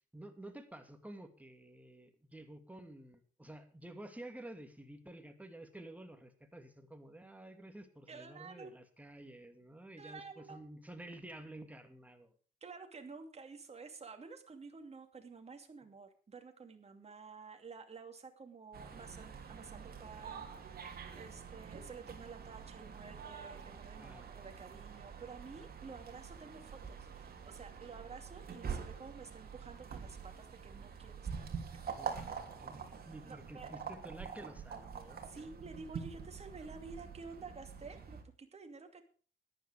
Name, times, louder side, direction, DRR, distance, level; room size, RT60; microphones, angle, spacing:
voice 1, 0.1-12.3 24.0-24.3 31.8-35.2, right 1 dB, 5° right, 6 dB, 2.5 m, -51 dB
voice 2, 8.1-8.7 10.0-10.6 12.6-31.5 31.7-32.0 33.3-33.7 35.2-39.0, right 4 dB, 30° right, 5 dB, 2.5 m, -51 dB
sound 1, 18.7-38.2, right 6 dB, 50° right, 3.0 m, -46 dB
14.0 x 10.5 x 5.0 m, 0.40 s
cardioid pair, 90°, 20 cm